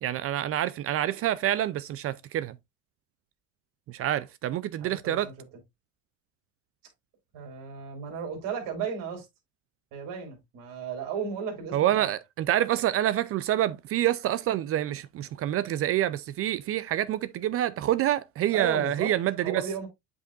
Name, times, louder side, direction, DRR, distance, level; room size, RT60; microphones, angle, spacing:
voice 1, 0.0-2.6 3.9-5.3 11.7-19.6, right 12 dB, 40° right, 0.5 m, -27 dB
voice 2, 4.8-5.3 7.3-9.3 9.9-12.1 18.5-19.1 19.4-19.9, right 6 dB, 65° right, 3.2 m, -34 dB
8.2 x 5.3 x 2.4 m
supercardioid pair, 110°, 36 cm